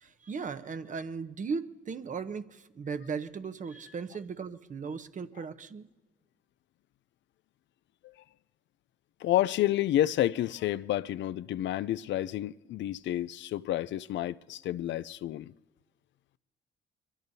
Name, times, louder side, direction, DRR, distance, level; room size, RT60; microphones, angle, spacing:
voice 1, 0.0-5.9, right 5 dB, 40° right, 0.9 m, -37 dB
voice 2, 9.2-15.5, left 13 dB, 70° left, 0.4 m, -30 dB
22.5 x 22.5 x 2.7 m
cardioid pair, 90°, 20 cm